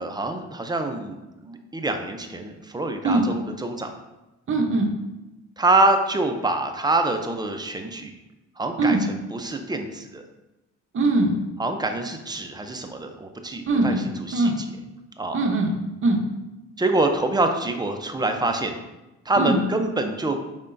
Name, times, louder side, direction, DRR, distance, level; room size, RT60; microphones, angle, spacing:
voice 1, 0.0-3.9 5.6-8.1 8.6-10.2 11.6-14.7 15.2-15.4 16.8-18.8 19.3-20.4, right 2 dB, 15° right, 5 dB, 0.5 m, -25 dB
voice 2, 4.5-4.9 8.8-9.0 10.9-11.3 13.7-14.0 14.3-14.5 15.3-15.7 16.0-16.2 19.4-19.6, right 2 dB, 45° right, 2 dB, 0.8 m, -21 dB
5.5 x 3.5 x 2.6 m, 1.0 s
cardioid pair, 90°, 30 cm